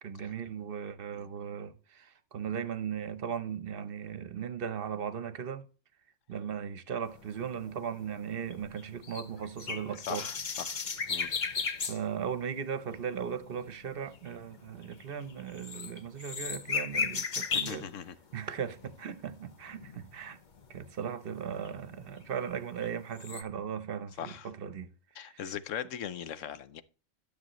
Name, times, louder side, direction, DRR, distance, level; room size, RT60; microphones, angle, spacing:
voice 1, 0.0-5.6 6.3-10.3 11.9-17.9 18.3-20.4 20.7-24.9 25.2-25.4, right 7 dB, 50° right, 0.9 m, -37 dB
sound 1, 7.1-12.0 12.3-12.6 12.9-17.9 18.3-19.1 19.6-20.8 21.1-21.2 21.7-22.9 23.1-23.4, left 5 dB, 40° left, 0.9 m, -36 dB
voice 2, 10.1-10.8 11.1-11.3 17.5-18.2 24.2-24.5 25.2-26.8, left 9 dB, 75° left, 1.1 m, -39 dB
12.5 x 7.0 x 3.0 m
omnidirectional pair, 1.3 m